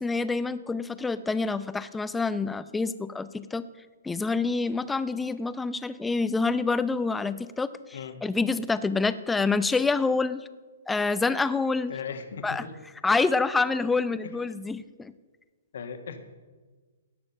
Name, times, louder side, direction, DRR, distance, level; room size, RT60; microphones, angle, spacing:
voice 1, 0.0-3.6 4.0-10.4 10.9-11.9 12.4-12.6 13.0-15.1, left 4 dB, 10° left, 14 dB, 0.6 m, -27 dB
voice 2, 11.9-12.7 15.7-16.2, left 6 dB, 60° left, 7 dB, 1.6 m, -37 dB
17.5 x 7.0 x 6.7 m, 1.4 s
figure-of-eight pair, 120°, 0 cm